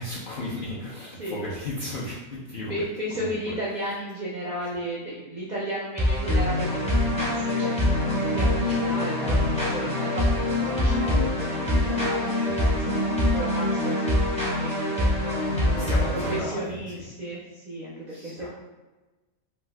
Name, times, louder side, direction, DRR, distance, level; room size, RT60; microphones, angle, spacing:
voice 1, 0.0-2.7 3.2-3.6 12.5-12.6 15.8-16.8 18.1-18.5, left 1 dB, 60° left, -6 dB, 0.5 m, -35 dB
voice 2, 2.7-14.3 14.5-15.0 15.5-18.5, right 1 dB, 60° right, -6 dB, 0.4 m, -34 dB
sound 1, 6.0-16.4, left 1 dB, 5° left, 0.5 m, -24 dB
2.6 x 2.3 x 3.2 m, 1.2 s
omnidirectional pair, 1.4 m